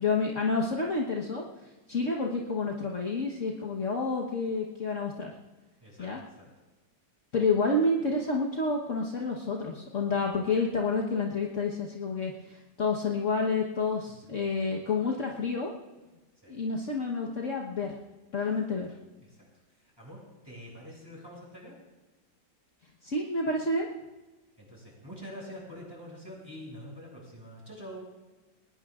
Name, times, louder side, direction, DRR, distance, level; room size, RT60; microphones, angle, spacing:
voice 1, 0.0-1.4 1.9-5.3 6.0-6.2 7.3-15.7 16.5-17.9 18.3-18.9 23.0-23.9, left 3 dB, 50° left, -1 dB, 1.4 m, -29 dB
voice 2, 5.8-6.5 14.2-14.4 16.4-16.6 19.2-19.5 19.8-21.8 24.6-28.0, equal, 15° right, -4 dB, 6.4 m, -46 dB
20.5 x 20.0 x 2.5 m, 1.2 s
omnidirectional pair, 1.8 m